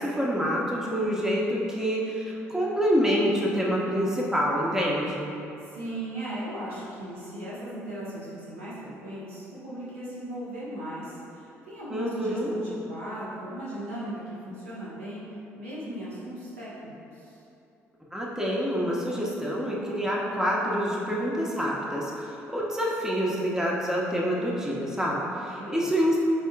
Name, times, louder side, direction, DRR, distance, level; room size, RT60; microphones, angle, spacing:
voice 1, 0.0-5.3 11.9-12.5 18.1-26.2, equal, 10° right, -4 dB, 1.2 m, -27 dB
voice 2, 5.6-15.2 15.5-17.4 25.6-25.9, right 1 dB, 85° right, -9 dB, 1.3 m, -37 dB
11.0 x 3.7 x 2.4 m, 2.8 s
figure-of-eight pair, 50°, 7 cm